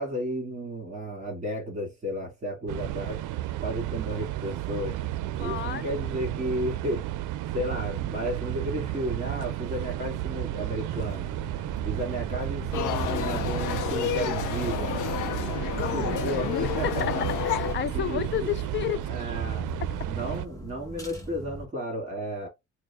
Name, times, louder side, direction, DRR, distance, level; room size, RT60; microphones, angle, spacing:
voice 1, 0.0-3.2 3.6-5.0 5.4-7.1 7.5-11.3 11.8-15.1 15.9-17.2 17.9-18.5 19.1-19.7 20.0-22.5, equal, 25° right, 2.1 m, -33 dB
sound 1, 2.7-20.5, right 14 dB, 85° right, 0.5 m, -32 dB
voice 2, 5.4-5.8 15.7-19.1, left 11 dB, 40° left, 0.4 m, -32 dB
sound 2, 11.0-21.7, equal, 10° left, 1.0 m, -41 dB
sound 3, 12.7-17.7, left 10 dB, 85° left, 0.6 m, -30 dB
4.5 x 2.1 x 3.4 m
cardioid pair, 90°, 30 cm